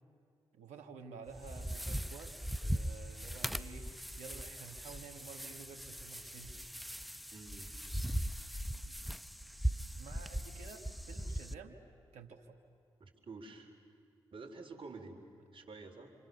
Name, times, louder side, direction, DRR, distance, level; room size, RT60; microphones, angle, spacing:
voice 1, 0.5-6.7 10.0-11.8 12.1-12.6, right 5 dB, 85° right, 5 dB, 1.7 m, -51 dB
sound 1, 1.3-11.5, right 1 dB, ahead, 0.8 m, -39 dB
voice 2, 7.3-7.7 13.0-13.8 14.3-15.2 15.5-16.1, right 3 dB, 50° right, 4 dB, 3.8 m, -49 dB
28.0 x 27.0 x 6.8 m, 2.6 s
supercardioid pair, 45°, 12 cm